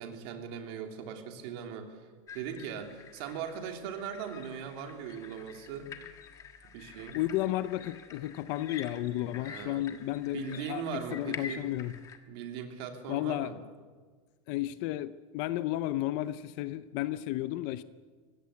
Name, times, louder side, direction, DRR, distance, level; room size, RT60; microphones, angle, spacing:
voice 1, 0.0-2.0 2.3-5.9 6.7-7.2 9.4-9.8 10.3-11.7 12.3-13.5, right 7 dB, 45° right, 4 dB, 3.2 m, -39 dB
sound 1, 2.3-12.2, left 7 dB, 20° left, 1.4 m, -48 dB
voice 2, 7.1-12.0 13.1-13.6 14.5-17.8, left 14 dB, 35° left, 15 dB, 0.6 m, -33 dB
25.0 x 18.0 x 8.3 m, 1.5 s
supercardioid pair, 175°, 18 cm